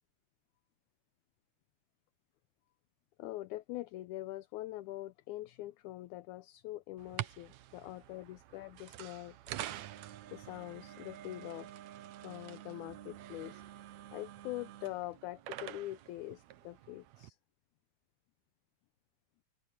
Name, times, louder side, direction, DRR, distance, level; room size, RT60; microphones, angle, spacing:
voice 1, 3.2-9.4 9.7-11.7 12.2-13.6 14.1-17.4, left 16 dB, 75° left, 1.9 m, -44 dB
sound 1, 7.0-17.3, right 13 dB, 70° right, 1.8 m, -47 dB
open air
omnidirectional pair, 3.9 m